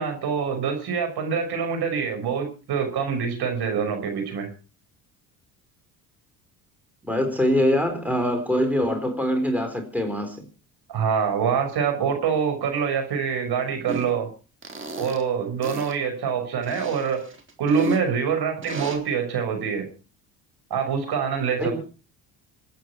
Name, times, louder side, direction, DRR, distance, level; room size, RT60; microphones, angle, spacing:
voice 1, 0.0-4.5 10.9-14.3 15.0-17.3 17.6-19.9 20.7-21.8, right 6 dB, 55° right, 5.7 m, -25 dB
voice 2, 7.0-10.4 21.6-21.8, equal, 5° right, 4.2 m, -23 dB
sound 1, 13.9-14.1 14.6-15.2 15.6-15.9 16.6-18.0 18.6-19.0, right 3 dB, 25° right, 3.9 m, -32 dB
27.0 x 9.2 x 4.6 m
hypercardioid pair, 65°, 46 cm